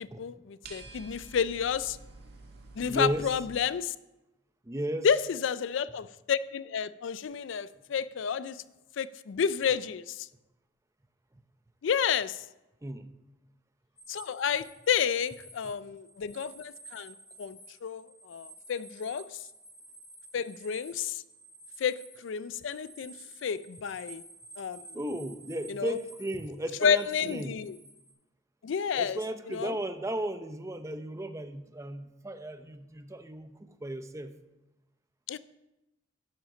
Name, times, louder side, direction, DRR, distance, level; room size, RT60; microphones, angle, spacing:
voice 1, 0.0-2.0 2.8-3.9 5.0-8.6 9.0-10.3 11.8-12.4 14.1-19.3 20.3-21.2 21.8-23.1 23.4-24.2 24.6-24.8 25.7-25.9 26.8-27.8 28.6-29.2 29.5-29.7 35.3-35.4, left 7 dB, 75° left, 17 dB, 0.4 m, -30 dB
sound 1, 0.6-3.5, right 3 dB, 55° right, 1.7 m, -49 dB
voice 2, 2.8-3.3 4.6-5.1 12.8-13.1 15.6-15.7 24.9-27.6 29.0-33.5 33.8-34.3 35.3-35.4, right 1 dB, 15° right, 9 dB, 0.6 m, -35 dB
sound 2, 14.0-28.1, right 2 dB, 35° left, 2.5 m, -52 dB
12.0 x 10.0 x 3.9 m, 0.98 s
head